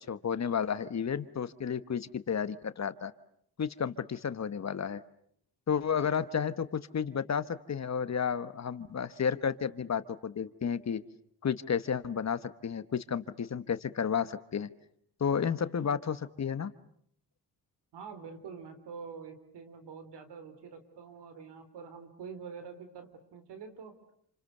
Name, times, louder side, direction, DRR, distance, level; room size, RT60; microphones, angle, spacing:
voice 1, 0.1-3.1 3.6-5.0 5.7-11.0 11.4-14.7 15.2-16.7, left 7 dB, 40° left, 13 dB, 1.2 m, -32 dB
voice 2, 17.9-23.9, right 5 dB, 80° right, 9 dB, 3.8 m, -46 dB
28.5 x 27.0 x 6.7 m, 0.67 s
cardioid pair, 80°, 40 cm